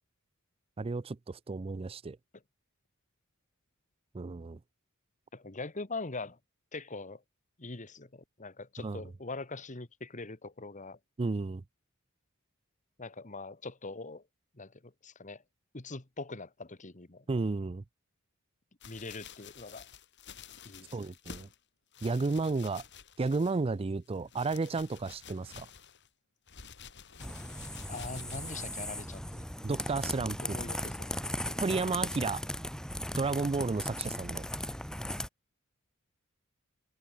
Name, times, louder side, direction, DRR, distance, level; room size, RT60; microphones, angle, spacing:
voice 1, 0.8-2.2 4.1-4.6 8.8-9.0 11.2-11.6 17.3-17.8 20.9-21.5 22.0-22.8 23.2-25.7 29.6-30.6 31.6-32.4 33.2-34.5, right 3 dB, 25° right, 0.4 m, -32 dB
voice 2, 5.3-6.4 6.7-7.2 7.6-11.0 13.0-14.2 14.6-15.4 15.7-17.3 18.9-19.9 20.6-21.1 27.9-29.4 30.4-31.6, left 3 dB, 35° left, 1.7 m, -42 dB
sound 1, 18.8-21.6 21.9-23.7 24.1-26.1 26.5-28.6 29.3-29.4, left 6 dB, 55° left, 3.1 m, -51 dB
sound 2, 27.2-35.3, left 1 dB, 5° left, 3.3 m, -37 dB
head